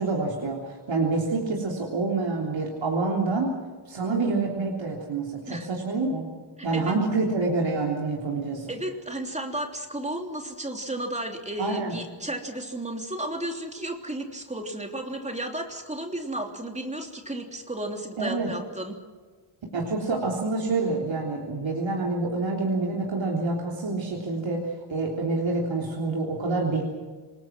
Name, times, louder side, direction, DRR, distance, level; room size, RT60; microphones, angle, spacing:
voice 1, 0.0-3.5 3.9-6.3 6.6-8.7 11.6-12.0 18.2-18.5 19.7-26.8, right 3 dB, 70° right, -2 dB, 3.6 m, -27 dB
voice 2, 6.6-6.9 8.7-18.9, right 1 dB, 15° right, 3 dB, 3.2 m, -33 dB
27.5 x 20.5 x 6.1 m, 1.4 s
wide cardioid pair, 155°, 47 cm